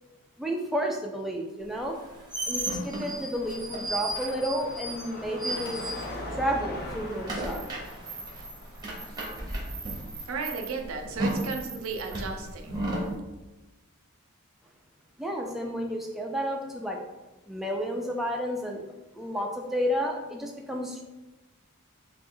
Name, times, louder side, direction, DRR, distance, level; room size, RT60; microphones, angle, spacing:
voice 1, 0.4-2.0 2.5-5.9 6.3-7.6 15.2-17.0 17.5-18.8 19.1-21.0, equal, ahead, 0 dB, 0.3 m, -31 dB
sound 1, 1.9-6.5 6.7-13.1, right 1 dB, 20° right, 0.7 m, -34 dB
Car passing by / Traffic noise roadway noise / Engine, 3.3-10.7, left 1 dB, 45° left, 0.6 m, -42 dB
voice 2, 10.3-12.8, right 4 dB, 65° right, 4 dB, 0.5 m, -34 dB
3.0 x 2.5 x 3.7 m, 1.1 s
head